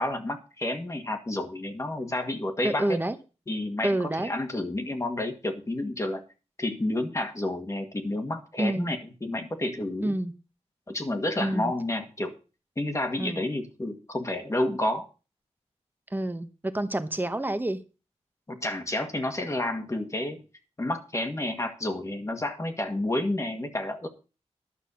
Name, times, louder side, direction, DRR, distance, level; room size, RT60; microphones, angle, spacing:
voice 1, 0.0-3.0 3.5-6.2 6.6-10.2 10.9-12.4 12.8-15.1 18.5-20.4 20.8-24.1, left 1 dB, 25° left, 6 dB, 1.8 m, -30 dB
voice 2, 2.6-3.1 3.8-4.3 8.6-8.9 10.0-10.3 11.4-11.7 13.2-13.4 16.1-17.8, right 1 dB, 15° right, 10 dB, 1.1 m, -28 dB
11.5 x 5.8 x 7.0 m, 0.33 s
wide cardioid pair, 110°, 12 cm